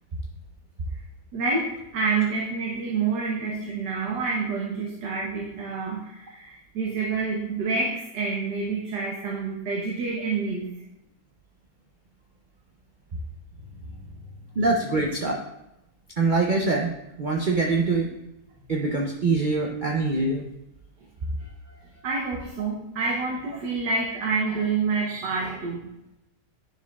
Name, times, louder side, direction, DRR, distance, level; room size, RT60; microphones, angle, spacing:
voice 1, 1.3-10.7 13.7-13.9 22.0-25.8, right 4 dB, 90° right, -3 dB, 1.5 m, -28 dB
voice 2, 14.6-15.4 16.2-16.9 17.2-18.1 18.7-20.4, right 3 dB, 60° right, 0 dB, 0.5 m, -24 dB
10.5 x 5.0 x 2.3 m, 0.87 s
omnidirectional pair, 1.8 m